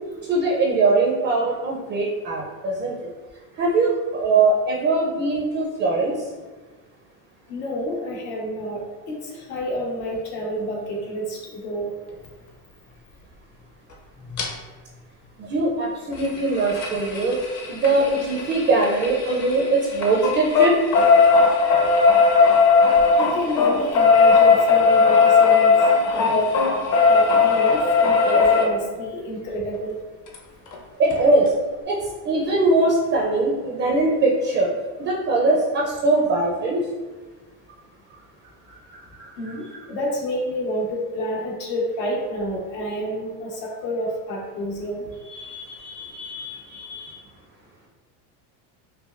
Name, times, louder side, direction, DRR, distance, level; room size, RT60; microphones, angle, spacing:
voice 1, 0.3-3.0 3.6-6.3 15.4-17.4 17.7-20.8 31.0-31.5 31.9-34.7 35.0-36.8 38.7-39.8 45.3-47.2, right 2 dB, 25° right, -2 dB, 0.4 m, -22 dB
voice 2, 7.5-8.8 9.1-11.9 14.2-14.3 23.2-25.8 26.1-26.5 27.0-29.9 39.4-45.1 45.5-45.6, equal, 80° left, -3 dB, 1.4 m, -29 dB
sound 1, 14.4-14.5 16.1-19.6 19.9-28.7 30.3-30.4 30.7-30.8 31.1-31.2, left 4 dB, 35° left, 0.6 m, -17 dB
5.0 x 2.2 x 2.4 m, 1.3 s
supercardioid pair, 125°, 49 cm